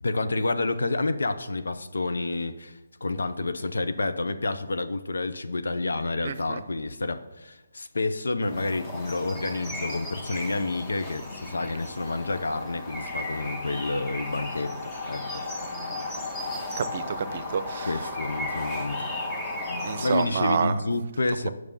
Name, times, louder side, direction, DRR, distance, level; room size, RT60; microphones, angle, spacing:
voice 1, 0.0-15.4 17.8-19.1 20.0-21.5, left 2 dB, 80° left, 10 dB, 0.8 m, -29 dB
voice 2, 6.2-6.6 16.8-17.9 19.8-20.8, right 6 dB, 45° right, 13 dB, 0.6 m, -28 dB
sound 1, 8.4-20.3, left 2 dB, 20° left, 1.5 m, -35 dB
8.9 x 6.4 x 5.6 m, 1.0 s
figure-of-eight pair, 150°, 0 cm